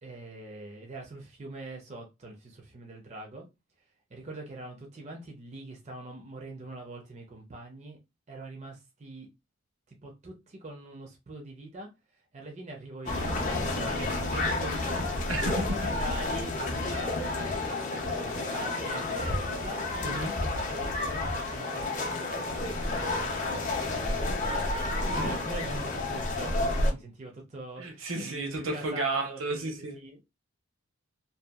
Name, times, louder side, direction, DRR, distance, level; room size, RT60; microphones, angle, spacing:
voice 1, 0.0-3.5 3.8-8.0 8.3-9.3 9.9-30.2, right 2 dB, 35° right, 0.5 m, -43 dB
sound 1, 13.1-26.9, left 2 dB, 35° left, 0.5 m, -30 dB
voice 2, 15.3-15.6 20.0-20.3 27.8-30.0, right 2 dB, 70° right, 0.8 m, -32 dB
Guitar, 16.5-24.1, left 3 dB, 80° left, 0.7 m, -49 dB
2.7 x 2.2 x 2.3 m
head